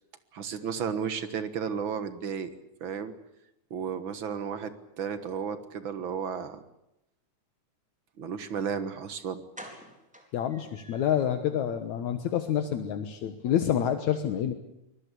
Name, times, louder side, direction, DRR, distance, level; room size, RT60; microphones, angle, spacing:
voice 1, 0.3-2.5 2.8-3.1 3.7-6.6 8.2-9.4, right 7 dB, 50° right, 11 dB, 1.7 m, -33 dB
sound 1, 8.9-9.0 9.5-11.3 11.7-11.8 12.1-12.3 12.6-12.7, equal, ahead, 3.9 m, -48 dB
voice 2, 10.3-14.5, left 10 dB, 70° left, 8 dB, 2.5 m, -28 dB
24.5 x 20.5 x 8.4 m, 0.85 s
omnidirectional pair, 3.5 m